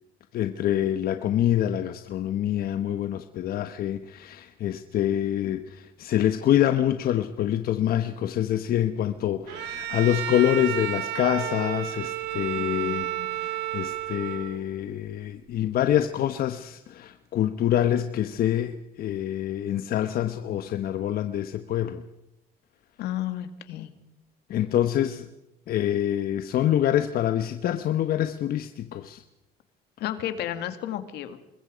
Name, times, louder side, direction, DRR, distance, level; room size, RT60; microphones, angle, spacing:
voice 1, 0.3-22.0 24.5-25.3 25.7-29.2, left 11 dB, 60° left, 9 dB, 1.1 m, -26 dB
Bowed string instrument, 9.5-14.7, right 12 dB, 90° right, 2.0 m, -31 dB
voice 2, 12.6-13.4 23.0-23.9 30.0-31.4, left 12 dB, 80° left, 10 dB, 2.2 m, -33 dB
26.5 x 22.0 x 5.2 m, 0.91 s
cardioid pair, 110°, 17 cm